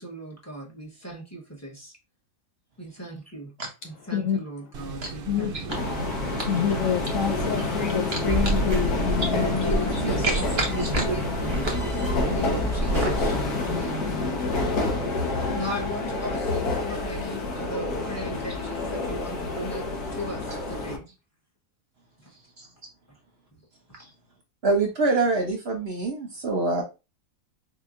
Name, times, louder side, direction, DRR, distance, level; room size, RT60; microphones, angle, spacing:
voice 1, 0.0-2.0 2.8-3.5 3.8-5.9 9.3-10.4 10.7-11.7 12.1-13.4 13.7-14.4 15.5-19.8 20.1-21.0 24.0-24.1, equal, 10° left, 0.9 m, -36 dB
sound 1, 4.7-13.8, right 5 dB, 65° right, 0.5 m, -38 dB
sound 2, 5.7-21.0, left 3 dB, 90° left, 1.5 m, -28 dB
voice 2, 6.5-9.8, left 7 dB, 65° left, 0.8 m, -27 dB
sound 3, 8.2-13.3, right 1 dB, 25° right, 0.8 m, -29 dB
voice 3, 9.9-10.7 10.9-11.1 11.6-11.8 20.5-20.6 22.6-22.7 24.0-24.1 24.6-26.8, right 3 dB, 50° right, 0.9 m, -26 dB
4.4 x 2.8 x 2.4 m
omnidirectional pair, 1.6 m